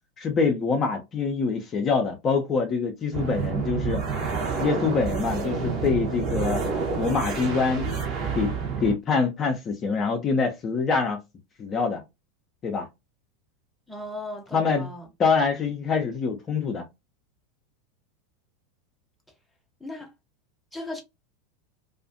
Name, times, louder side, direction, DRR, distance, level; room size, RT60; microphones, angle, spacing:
voice 1, 0.2-4.0 4.6-6.6 7.0-8.5 8.8-11.2 11.6-12.0 12.6-12.9 14.5-14.9 15.2-16.8, left 5 dB, 30° left, 0.5 m, -25 dB
sound 1, 3.1-8.9, right 5 dB, 45° right, 0.8 m, -28 dB
voice 2, 13.9-15.1 19.8-20.1 20.7-21.0, left 1 dB, ahead, 0.8 m, -37 dB
2.4 x 2.4 x 2.5 m
figure-of-eight pair, 85°, 0 cm